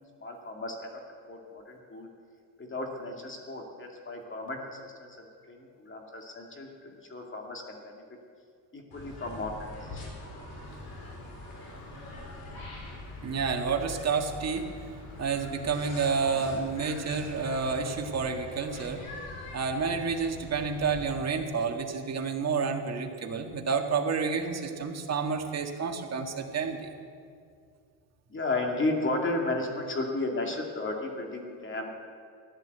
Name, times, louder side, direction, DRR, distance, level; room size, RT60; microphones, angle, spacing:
voice 1, 0.2-1.0 1.3-2.1 2.6-8.0 8.7-10.0 28.3-31.9, left 2 dB, 30° left, 2 dB, 2.4 m, -34 dB
sound 1, 8.9-21.1, left 2 dB, 60° left, 4.4 m, -43 dB
voice 2, 13.2-14.7 15.2-19.0 19.5-26.9, right 5 dB, 40° right, 4 dB, 1.8 m, -30 dB
15.0 x 11.0 x 8.0 m, 2.3 s
cardioid pair, 105°, 40 cm